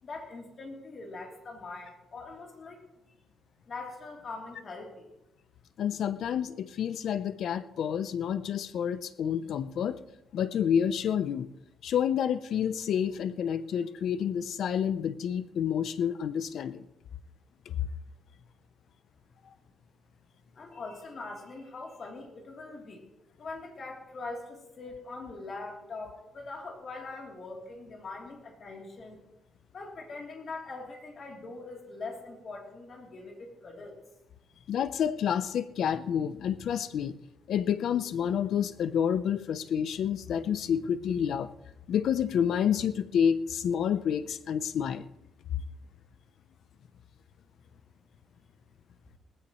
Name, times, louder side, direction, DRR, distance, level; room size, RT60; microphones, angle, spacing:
voice 1, 0.0-3.1 3.7-5.1 20.5-23.0 23.4-29.2 29.7-34.0, left 3 dB, 40° left, 0 dB, 3.3 m, -42 dB
voice 2, 5.8-10.0 10.3-11.5 11.8-16.8 17.7-17.9 34.7-37.2 37.5-41.5 41.9-45.1, left 8 dB, 60° left, 13 dB, 0.7 m, -29 dB
19.0 x 15.5 x 3.2 m, 0.91 s
cardioid pair, 155°, 0 cm